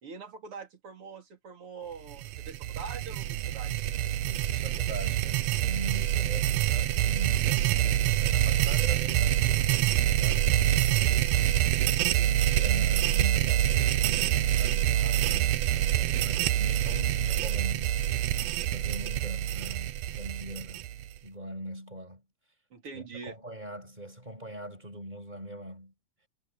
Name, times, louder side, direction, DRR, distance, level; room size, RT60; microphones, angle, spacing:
voice 1, 0.0-3.8 22.7-23.4, right 5 dB, 45° right, 4.3 m, -43 dB
sound 1, 2.1-21.2, right 12 dB, 70° right, 1.7 m, -26 dB
voice 2, 4.0-11.4 12.2-17.9 18.7-20.9 21.2-22.2 22.9-25.9, equal, 15° right, 6.2 m, -42 dB
omnidirectional pair, 3.6 m